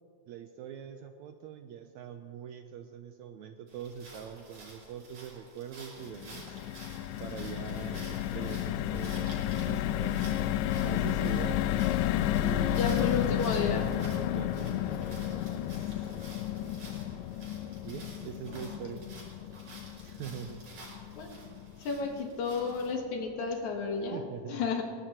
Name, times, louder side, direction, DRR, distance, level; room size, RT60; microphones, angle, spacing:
voice 1, 0.3-6.6 7.2-10.6 10.8-11.7 12.3-13.1 14.3-16.1 17.8-19.0 20.0-20.6 24.0-24.7, right 8 dB, 80° right, 6 dB, 1.7 m, -43 dB
sound 1, 3.7-22.9, right 2 dB, 60° right, 6.5 m, -51 dB
sound 2, 6.0-22.3 22.7-22.8 23.1-23.3, left 12 dB, 90° left, 2.2 m, -32 dB
voice 2, 12.8-13.9 18.6-18.8 21.1-21.3 21.8-24.2 24.5-24.8, left 4 dB, 65° left, 2 dB, 2.6 m, -32 dB
21.0 x 19.0 x 3.0 m, 2.2 s
omnidirectional pair, 3.8 m